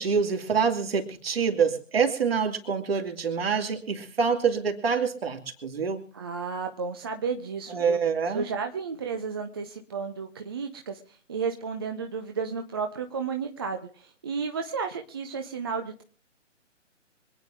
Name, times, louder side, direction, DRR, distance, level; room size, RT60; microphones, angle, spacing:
voice 1, 0.0-6.0 7.7-8.4, right 6 dB, 50° right, 4 dB, 2.8 m, -26 dB
voice 2, 6.1-8.0 8.3-16.0, right 5 dB, 20° right, 5 dB, 0.7 m, -33 dB
25.5 x 9.6 x 3.5 m, 0.43 s
figure-of-eight pair, 140°, 37 cm